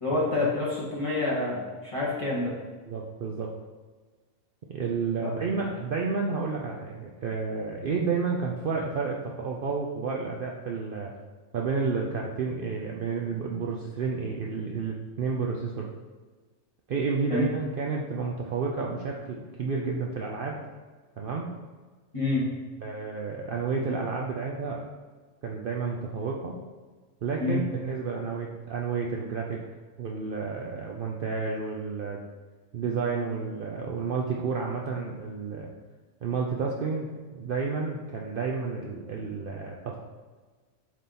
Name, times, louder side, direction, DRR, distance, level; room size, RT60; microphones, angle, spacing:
voice 1, 0.0-2.5 5.2-5.3 17.3-17.4 22.1-22.4 27.4-27.6, left 2 dB, 25° left, -7 dB, 2.1 m, -27 dB
voice 2, 2.9-3.5 4.7-11.1 11.5-15.9 16.9-20.6 21.2-21.5 22.8-24.8 25.4-26.6 27.2-29.6 30.0-32.2 32.7-35.7 36.2-37.1 37.4-40.0, right 5 dB, 55° right, -1 dB, 0.7 m, -31 dB
7.4 x 3.6 x 4.2 m, 1.3 s
omnidirectional pair, 1.3 m